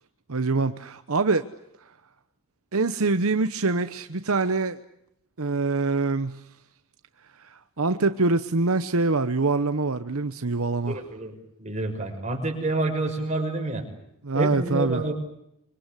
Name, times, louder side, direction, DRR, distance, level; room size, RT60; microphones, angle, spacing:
voice 1, 0.3-1.5 2.7-4.8 5.4-6.4 7.4-11.0 14.2-15.0, right 3 dB, 75° right, 1.0 m, -24 dB
voice 2, 10.9-13.8 14.3-15.1, right 2 dB, 30° right, 5.9 m, -28 dB
25.5 x 25.0 x 8.4 m
head